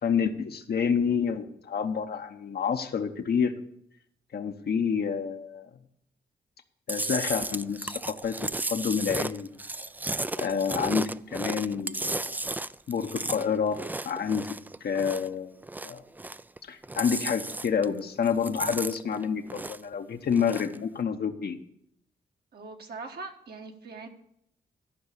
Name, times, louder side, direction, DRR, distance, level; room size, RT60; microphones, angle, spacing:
voice 1, 0.0-3.6 4.3-5.7 6.9-8.4 8.7-9.5 10.4-12.4 12.9-13.8 14.0-14.5 14.8-15.5 15.8-16.0 16.6-21.6, left 6 dB, 65° left, 7 dB, 0.9 m, -28 dB
Chewing mastication, 6.9-15.3 15.6-16.6 16.8-18.0 18.3-19.9 20.3-20.8, right 2 dB, 10° right, 0.3 m, -34 dB
voice 2, 22.5-24.1, right 4 dB, 65° right, 3 dB, 1.4 m, -41 dB
12.5 x 5.5 x 6.8 m, 0.74 s
supercardioid pair, 50°, 18 cm